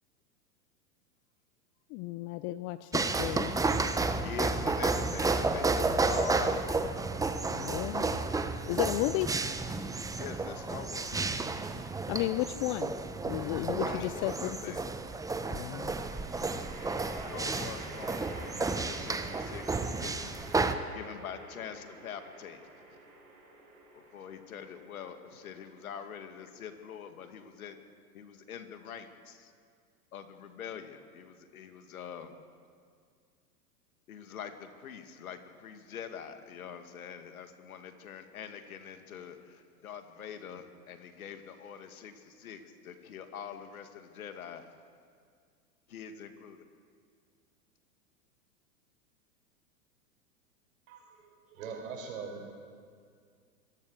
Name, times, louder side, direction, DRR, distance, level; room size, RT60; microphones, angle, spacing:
voice 1, 1.9-3.5 7.5-8.2 8.6-9.3 12.1-12.9 13.2-14.6 15.5-15.9, left 17 dB, 30° left, 14 dB, 0.5 m, -33 dB
sound 1, 2.9-20.7, right 3 dB, 10° right, 1.0 m, -32 dB
voice 2, 4.2-6.6 9.0-9.2 10.1-11.4 13.8-14.8 17.3-20.3 20.9-23.0 23.9-27.8 28.1-29.5 30.1-32.4 34.1-44.7 45.9-46.6, left 8 dB, 70° left, 7 dB, 2.3 m, -44 dB
sound 2, 15.9-27.2, right 2 dB, 75° right, 7.1 m, -50 dB
voice 3, 50.9-52.6, right 5 dB, 60° right, 2 dB, 6.8 m, -42 dB
25.5 x 19.5 x 6.7 m, 2.1 s
hypercardioid pair, 105°, 45 cm